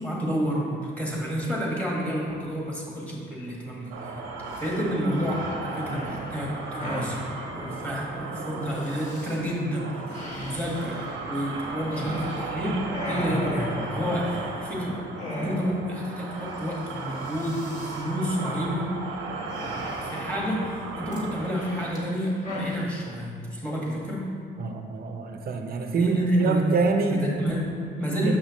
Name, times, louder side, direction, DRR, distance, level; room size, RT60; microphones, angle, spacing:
voice 1, 0.0-4.2 4.6-7.2 7.5-15.0 15.3-18.9 20.0-24.3 25.9-26.7 27.1-28.4, equal, 5° left, -4 dB, 1.5 m, -29 dB
sound 1, 3.9-21.9, right 3 dB, 85° right, 0.8 m, -36 dB
sound 2, 4.5-4.7 5.1-7.2 8.7-9.4 10.1-12.5 12.8-14.7 15.2-15.9 16.2-16.3 16.6-16.9 17.1-18.0 19.5-20.4 21.1-22.8, left 1 dB, 35° left, 1.5 m, -36 dB
voice 2, 24.6-27.2 28.2-28.3, right 4 dB, 50° right, 4 dB, 0.7 m, -26 dB
6.6 x 5.6 x 3.1 m, 2.1 s
cardioid pair, 90°, 20 cm